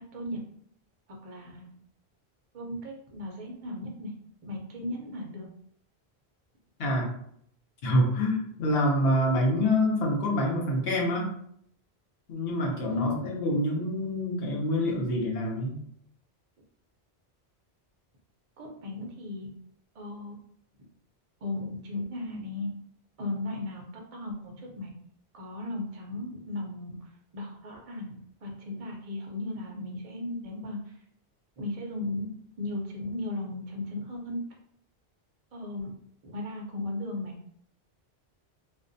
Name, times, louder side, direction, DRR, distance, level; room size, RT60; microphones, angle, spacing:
voice 1, 1.2-1.7 2.5-4.1 4.4-5.5 12.9-13.4 18.6-19.5 19.9-20.3 21.4-22.7 23.2-23.8 24.1-24.9 25.3-31.0 31.6-32.3 32.6-34.4 35.5-35.9 36.2-37.3, left 2 dB, 45° right, 0 dB, 0.5 m, -36 dB
voice 2, 6.8-7.1 7.8-11.3 12.3-15.8, left 1 dB, 70° left, -2 dB, 0.9 m, -26 dB
2.5 x 2.1 x 2.5 m, 0.68 s
omnidirectional pair, 1.1 m